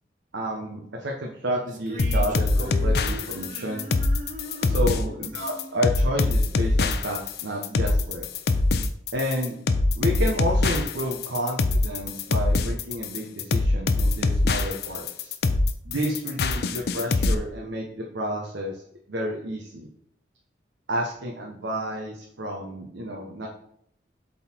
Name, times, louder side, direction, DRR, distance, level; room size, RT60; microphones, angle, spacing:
voice 1, 0.3-3.9 4.6-8.3 9.1-9.6 10.0-15.3 15.8-18.8 19.1-19.9 20.9-23.5, equal, 90° right, -1 dB, 1.1 m, -30 dB
sound 1, 1.7-7.0, right 1 dB, 45° right, 0.9 m, -41 dB
sound 2, 2.0-17.4, left 2 dB, 60° left, 0.5 m, -23 dB
7.5 x 4.0 x 4.5 m, 0.69 s
head